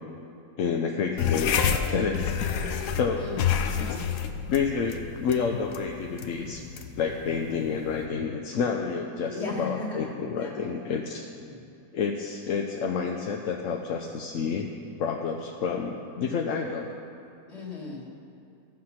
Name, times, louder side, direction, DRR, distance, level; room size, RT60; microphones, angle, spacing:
voice 1, 0.6-1.5 1.9-3.3 4.5-6.6 7.0-11.3 11.9-14.7 15.0-16.9, left 6 dB, 60° left, 1 dB, 0.9 m, -29 dB
sound 1, 1.2-8.1, left 7 dB, 85° left, 1.3 m, -29 dB
voice 2, 3.2-4.1 9.2-10.8 11.4-11.6 17.5-18.1, left 3 dB, 40° left, -3 dB, 2.2 m, -37 dB
13.5 x 7.6 x 5.7 m, 2.6 s
omnidirectional pair, 1.7 m